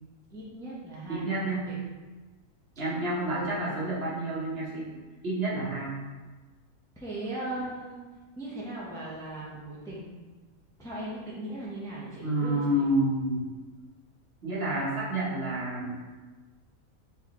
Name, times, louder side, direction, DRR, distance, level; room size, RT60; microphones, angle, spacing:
voice 1, 0.3-1.8 3.3-3.6 7.0-8.0 8.4-10.1 10.8-12.9, right 1 dB, 5° left, -8 dB, 0.7 m, -38 dB
voice 2, 1.1-1.7 2.8-4.9 5.2-6.0 12.2-13.6 14.4-16.0, right 1 dB, 45° right, -8 dB, 1.3 m, -29 dB
4.2 x 3.6 x 3.1 m, 1.3 s
omnidirectional pair, 1.5 m